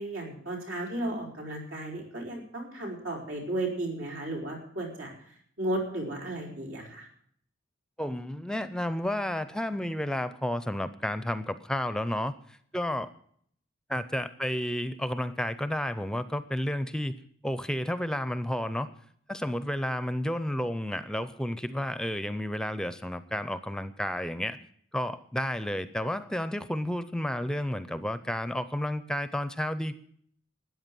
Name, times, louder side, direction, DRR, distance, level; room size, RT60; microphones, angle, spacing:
voice 1, 0.0-5.1 5.6-7.1, right 1 dB, 90° right, 0 dB, 4.7 m, -34 dB
voice 2, 8.0-13.1 13.9-17.2 17.4-18.9 19.3-24.6 24.9-29.9, left 1 dB, 5° left, 13 dB, 0.5 m, -31 dB
13.5 x 9.4 x 7.5 m, 0.63 s
head